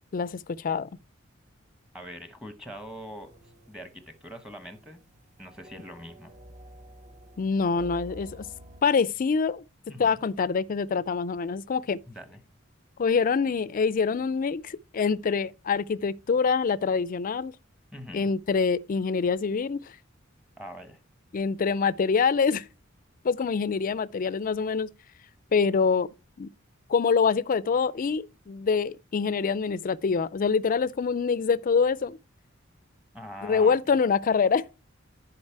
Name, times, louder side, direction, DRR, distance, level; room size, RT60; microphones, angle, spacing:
voice 1, 0.1-0.9 7.4-8.5 8.8-9.6 10.0-12.0 13.0-17.5 18.1-19.8 21.3-22.7 23.2-24.9 25.5-26.1 26.4-26.5 26.9-32.2 33.4-34.7, left 5 dB, 45° left, 0.4 m, -25 dB
voice 2, 1.9-3.3 3.7-5.0 5.4-6.3 9.9-10.2 12.1-12.4 17.9-18.3 20.6-21.0 33.1-34.0, equal, 5° right, 1.0 m, -42 dB
sound 1, 2.7-8.8, equal, 35° right, 0.7 m, -50 dB
10.5 x 4.9 x 4.6 m
head